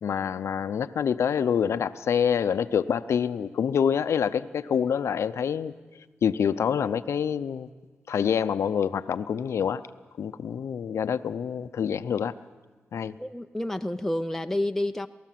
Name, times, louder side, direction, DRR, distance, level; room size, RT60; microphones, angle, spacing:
voice 1, 0.0-5.7 6.2-7.7 8.1-9.8 10.2-12.3 12.9-13.1, left 7 dB, 80° left, 13 dB, 0.6 m, -26 dB
voice 2, 13.2-15.1, left 1 dB, 5° left, 6 dB, 0.6 m, -29 dB
29.0 x 13.5 x 7.6 m, 1.4 s
cardioid pair, 55°, 5 cm